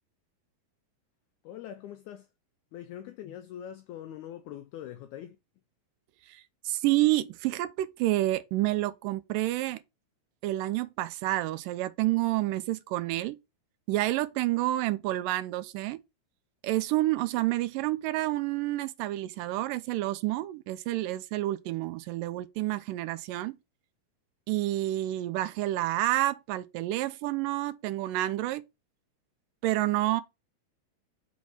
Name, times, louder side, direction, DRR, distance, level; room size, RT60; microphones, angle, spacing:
voice 1, 1.4-2.3 2.7-5.4, left 10 dB, 85° left, 1.7 m, -43 dB
voice 2, 6.3-9.8 10.4-13.4 13.9-16.0 16.6-23.6 24.5-28.6 29.6-30.2, right 16 dB, 80° right, 2.1 m, -29 dB
6.2 x 3.6 x 6.1 m
omnidirectional pair, 4.0 m